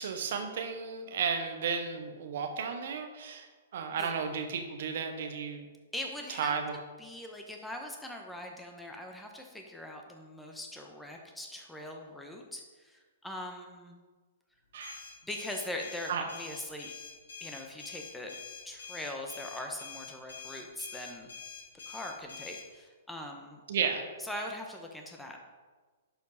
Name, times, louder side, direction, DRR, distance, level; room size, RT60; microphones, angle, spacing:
voice 1, 0.0-3.5 3.7-5.7 6.4-6.7 14.7-15.0 16.1-16.2 23.7-24.1, right 6 dB, 65° right, 5 dB, 1.4 m, -33 dB
voice 2, 5.9-6.6 7.0-14.0 15.2-16.9 17.4-18.4 18.6-21.3 21.9-23.6 24.2-25.4, left 1 dB, 5° left, 1 dB, 1.3 m, -41 dB
sound 1, 14.8-22.6, left 6 dB, 80° left, 2.3 m, -46 dB
11.5 x 5.2 x 4.2 m, 1.4 s
hypercardioid pair, 125°, 0 cm